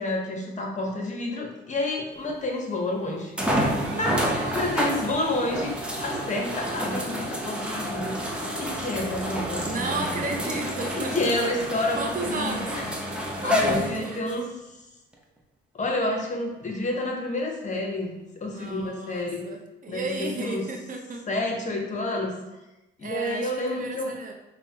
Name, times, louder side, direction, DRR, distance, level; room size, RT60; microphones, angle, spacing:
voice 1, 0.0-5.7 6.0-10.0 11.0-12.8 13.4-14.5 15.7-19.4 19.9-20.6 21.3-22.4 23.0-24.1, left 2 dB, 40° left, 1 dB, 0.8 m, -29 dB
sound 1, 2.3-2.4 3.4-14.4 15.1-15.2 18.7-18.8, equal, 5° right, 0.6 m, -29 dB
voice 2, 3.9-4.9 9.6-11.3 11.9-12.7 13.4-14.2 18.4-21.3 23.0-24.3, right 3 dB, 45° right, 2 dB, 0.6 m, -33 dB
5.3 x 2.1 x 2.8 m, 0.99 s
cardioid pair, 90°, 20 cm